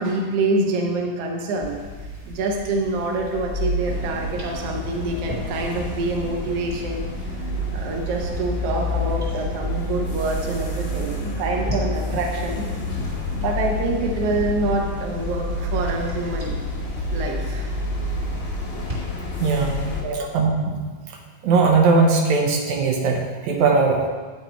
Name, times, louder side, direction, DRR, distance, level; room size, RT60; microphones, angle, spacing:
voice 1, 0.0-1.8 2.3-7.1 7.7-12.7 13.3-16.6 17.1-17.7 20.0-20.3, right 2 dB, 60° right, 1 dB, 1.9 m, -26 dB
sound 1, 1.6-19.0, equal, 30° right, 2.4 m, -30 dB
sound 2, 3.8-20.0, left 3 dB, 90° left, 0.5 m, -32 dB
voice 2, 19.4-19.9 20.3-20.8 21.4-24.1, right 4 dB, 80° right, 1 dB, 2.3 m, -19 dB
9.8 x 6.8 x 4.5 m, 1.4 s
omnidirectional pair, 3.4 m